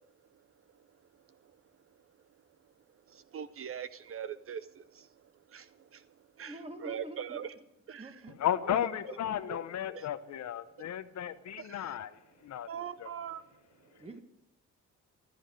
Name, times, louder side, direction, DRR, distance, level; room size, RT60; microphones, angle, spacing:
voice 1, 3.1-7.5 7.9-8.2 8.7-9.2 9.9-10.1 11.6-12.0 12.6-13.4 13.8-14.0, right 8 dB, 45° right, 14 dB, 0.6 m, -43 dB
voice 2, 6.4-7.4 8.0-8.4 9.1-9.2 9.5-9.6 14.0-14.2, right 1 dB, 20° right, 7 dB, 1.7 m, -46 dB
voice 3, 8.4-12.2 12.4-12.7 13.0-13.1, left 10 dB, 65° left, 12 dB, 0.8 m, -34 dB
15.0 x 11.0 x 5.3 m, 0.87 s
cardioid pair, 90°, 30 cm